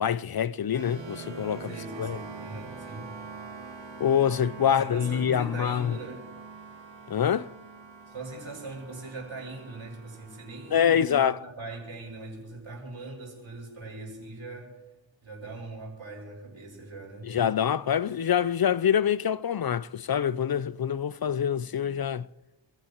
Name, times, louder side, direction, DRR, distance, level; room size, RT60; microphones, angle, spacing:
voice 1, 0.0-1.7 2.0-2.2 4.0-6.0 7.1-7.5 10.7-11.4 17.2-22.3, left 8 dB, 50° left, 0.5 m, -25 dB
sound 1, 0.7-10.8, right 4 dB, 65° right, 2.4 m, -44 dB
voice 2, 1.7-3.1 4.6-6.3 8.1-14.8 15.2-17.3, right 2 dB, 85° right, 7.1 m, -41 dB
29.5 x 16.0 x 3.0 m
wide cardioid pair, 80°, 48 cm